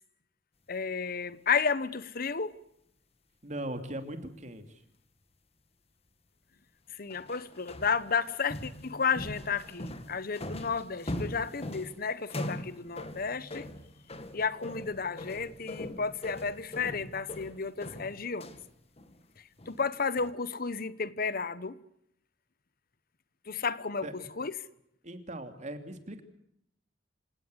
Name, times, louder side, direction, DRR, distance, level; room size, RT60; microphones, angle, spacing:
voice 1, 0.7-2.6 6.9-13.7 14.3-18.5 19.7-21.8 23.5-24.5, left 5 dB, 55° left, 1.1 m, -32 dB
voice 2, 3.4-4.8 24.0-24.3 25.0-26.2, right 1 dB, 40° right, 2.9 m, -39 dB
sound 1, 7.1-18.7 19.0-19.2 19.6-19.9 20.1-20.3, left 1 dB, 35° left, 2.2 m, -41 dB
27.5 x 18.0 x 8.1 m
head